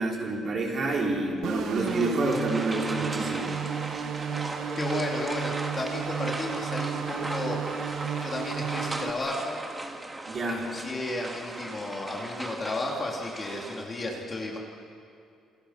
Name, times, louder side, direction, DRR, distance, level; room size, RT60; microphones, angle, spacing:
voice 1, 0.0-3.5 10.3-10.7, right 2 dB, 35° right, -2 dB, 4.7 m, -28 dB
sound 1, 1.4-9.1, right 8 dB, 65° right, 1.3 m, -33 dB
sound 2, 1.6-13.8, right 2 dB, 15° right, 1.7 m, -37 dB
voice 2, 4.7-7.6 8.1-9.6 10.4-14.6, left 2 dB, 20° left, -1 dB, 2.5 m, -33 dB
28.5 x 28.0 x 5.7 m, 2.5 s
cardioid pair, 175°, 0 cm